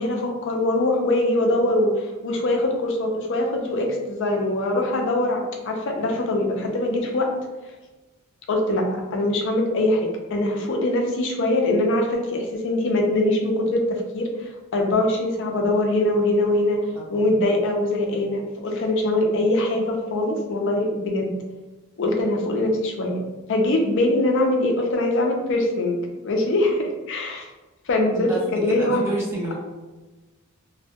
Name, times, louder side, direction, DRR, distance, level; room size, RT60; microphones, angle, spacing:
voice 1, 0.0-7.3 8.5-16.8 17.1-21.3 22.0-23.2 23.5-27.5 27.9-29.0, left 1 dB, 60° left, 2 dB, 0.4 m, -23 dB
voice 2, 16.9-17.3 28.1-28.4 28.7-29.5, right 1 dB, 10° right, -8 dB, 0.9 m, -29 dB
2.2 x 2.1 x 2.7 m, 1.2 s
head